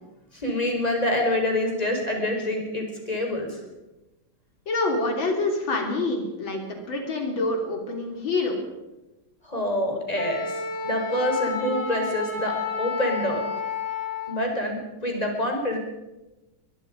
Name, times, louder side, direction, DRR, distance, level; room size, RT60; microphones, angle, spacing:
voice 1, 0.3-3.6 9.4-13.4 14.3-15.8, left 1 dB, 20° left, 2 dB, 5.0 m, -26 dB
voice 2, 4.7-8.6, left 2 dB, 85° left, 3 dB, 4.0 m, -26 dB
Wind instrument woodwind instrument, 10.2-14.4, left 4 dB, 60° left, 4.3 m, -30 dB
22.5 x 22.5 x 5.3 m, 1.0 s
omnidirectional pair, 2.1 m